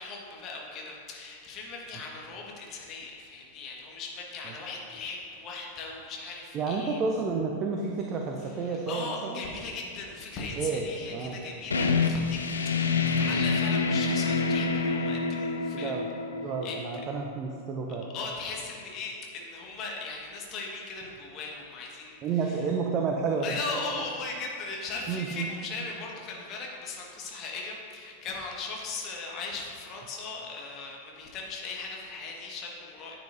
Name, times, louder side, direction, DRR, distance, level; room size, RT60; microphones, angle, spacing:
voice 1, 0.0-7.0 8.6-15.9 16.6-16.8 18.1-22.6 23.4-33.2, left 3 dB, 35° left, -1 dB, 1.6 m, -38 dB
voice 2, 6.5-9.4 10.6-10.8 11.1-11.4 15.7-16.1 16.4-18.1 22.2-23.6 25.1-25.5, right 5 dB, 30° right, 1 dB, 0.7 m, -30 dB
sound 1, 11.7-17.2, left 4 dB, 70° left, 0.5 m, -27 dB
10.5 x 7.6 x 2.6 m, 2.3 s
figure-of-eight pair, 90°, 0 cm